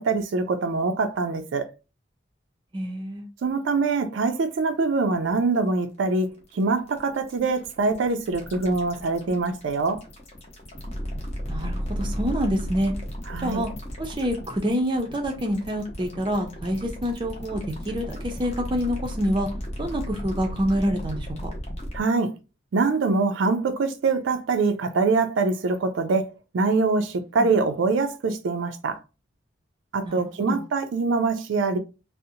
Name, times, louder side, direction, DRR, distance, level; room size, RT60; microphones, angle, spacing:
voice 1, 0.0-1.7 3.4-10.0 13.3-13.6 21.9-22.3 22.7-29.0 29.9-31.8, right 3 dB, 90° right, 0.4 m, -24 dB
voice 2, 2.7-3.3 11.5-12.9 13.4-13.7 14.0-19.5 19.8-21.5 27.4-27.5 30.1-30.6, equal, 25° right, 0.4 m, -27 dB
sound 1, 5.3-22.0, equal, 35° left, 0.7 m, -35 dB
2.5 x 2.0 x 2.6 m
head